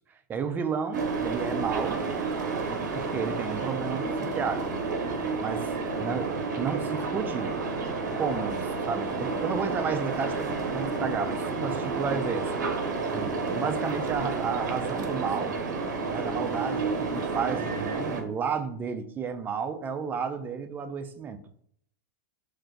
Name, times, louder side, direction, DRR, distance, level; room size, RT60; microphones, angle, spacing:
voice 1, 0.3-2.0 2.6-4.7 5.4-5.7 6.0-7.5 8.1-12.6 13.1-15.6 16.1-21.4, right 6 dB, 20° right, 9 dB, 0.3 m, -32 dB
Windy-Harbor, 0.9-18.2, right 4 dB, 85° right, 0.6 m, -30 dB
2.5 x 2.2 x 3.6 m, 0.65 s
hypercardioid pair, 125°, 10 cm